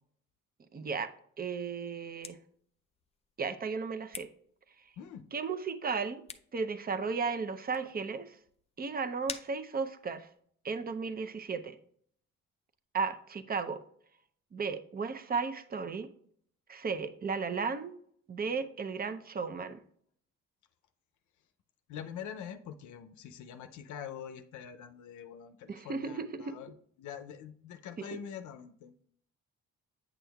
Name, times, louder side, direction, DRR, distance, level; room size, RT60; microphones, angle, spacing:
voice 1, 0.7-1.1 1.4-2.4 3.4-4.3 5.3-6.2 6.5-8.4 8.8-10.3 10.6-11.8 12.9-13.8 14.5-16.1 16.7-17.9 18.3-19.8 25.7-26.6, right 5 dB, 30° right, 11 dB, 0.6 m, -35 dB
sound 1, 1.8-10.4, left 5 dB, 20° left, 0.4 m, -50 dB
voice 2, 5.0-5.3 21.9-28.9, left 8 dB, 75° left, 8 dB, 0.6 m, -45 dB
9.0 x 6.1 x 2.3 m, 0.62 s
cardioid pair, 90°, 30 cm